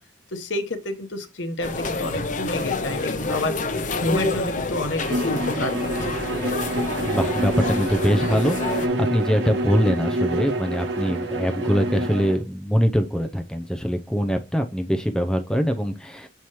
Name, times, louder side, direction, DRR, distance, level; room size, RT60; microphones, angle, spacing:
voice 1, 0.3-3.5 3.9-5.8, left 2 dB, 70° left, 8 dB, 1.0 m, -29 dB
sound 1, 1.6-8.9, left 3 dB, 40° left, 0.7 m, -28 dB
Bowed string instrument, 5.0-12.4, right 1 dB, 70° right, 1.2 m, -27 dB
voice 2, 7.1-16.3, equal, 5° left, 6 dB, 0.5 m, -23 dB
7.0 x 4.7 x 3.0 m, 0.29 s
head